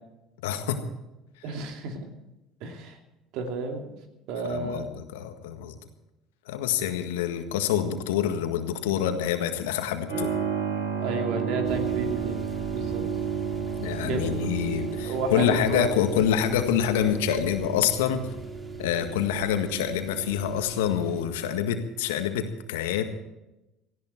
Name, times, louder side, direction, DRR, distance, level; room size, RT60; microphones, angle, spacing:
voice 1, 0.4-0.8 4.4-5.7 6.5-10.3 13.8-18.2 18.8-23.0, left 9 dB, 75° left, 7 dB, 1.7 m, -26 dB
voice 2, 1.4-2.0 2.6-3.0 3.3-3.8 4.3-4.9 11.0-12.4 12.7-13.0 14.0-14.5 15.0-15.9, right 4 dB, 65° right, 4 dB, 2.8 m, -31 dB
Keyboard (musical), 10.1-22.5, right 7 dB, 85° right, 7.3 m, -33 dB
sound 1, 11.6-21.2, right 2 dB, 20° right, 3.2 m, -44 dB
18.0 x 15.0 x 4.5 m, 0.96 s
hypercardioid pair, 65°, 0 cm